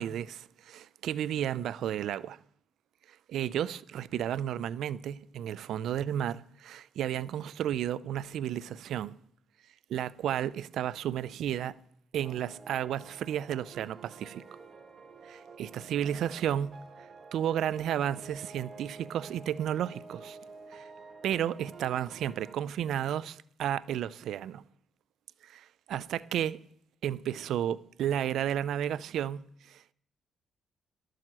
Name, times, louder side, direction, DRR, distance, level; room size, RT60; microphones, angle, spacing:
voice 1, 0.0-2.4 3.3-9.1 9.9-11.8 12.1-14.4 15.3-16.8 17.3-20.4 20.7-20.8 21.2-24.6 25.4-26.6 27.0-29.9, right 10 dB, 75° right, 0.4 m, -32 dB
sound 1, 12.2-22.5, right 4 dB, 45° right, 2.1 m, -50 dB
12.0 x 7.6 x 7.6 m
cardioid pair, 90°, 0 cm